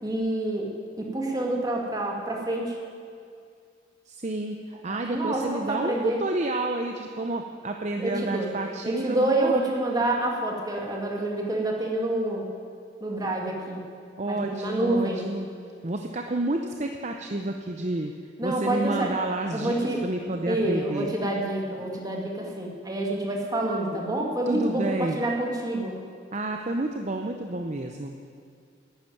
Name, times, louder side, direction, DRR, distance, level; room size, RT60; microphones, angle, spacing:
voice 1, 0.0-0.7 1.0-2.8 4.9-6.2 8.0-8.5 8.8-12.5 13.0-13.8 14.3-15.2 18.4-19.1 19.5-20.0 20.5-26.0, right 1 dB, 20° right, -1 dB, 2.1 m, -27 dB
voice 2, 4.1-9.5 14.2-15.5 15.8-18.1 18.4-19.8 20.0-21.1 24.5-25.2 26.3-28.1, right 2 dB, 40° right, 4 dB, 0.7 m, -30 dB
11.5 x 9.9 x 9.2 m, 2.3 s
head